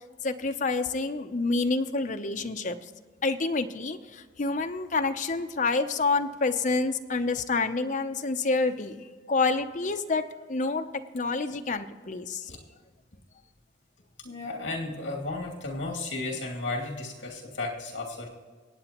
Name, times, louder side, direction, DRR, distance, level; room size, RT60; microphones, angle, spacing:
voice 1, 0.2-2.9 3.2-12.5, left 3 dB, 40° left, 7 dB, 0.6 m, -28 dB
voice 2, 14.2-18.3, left 2 dB, 65° left, -1 dB, 2.5 m, -34 dB
24.5 x 8.9 x 3.0 m, 1.5 s
head